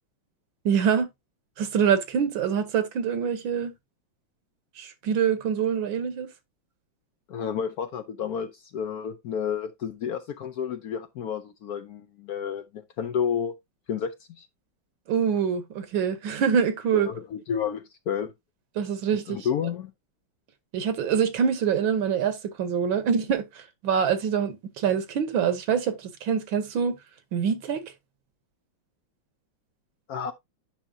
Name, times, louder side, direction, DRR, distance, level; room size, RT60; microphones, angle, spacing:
voice 1, 0.7-1.1 1.6-3.7 4.8-6.3 15.1-17.1 18.8-19.5 20.7-23.5 23.8-26.0 26.2-26.9 27.3-27.8, right 7 dB, 80° right, 1.8 m, -25 dB
voice 2, 7.3-13.5 13.9-14.5 16.9-18.3 19.1-19.9 30.1-30.3, left 7 dB, 70° left, 0.9 m, -31 dB
9.0 x 5.7 x 2.7 m
omnidirectional pair, 2.1 m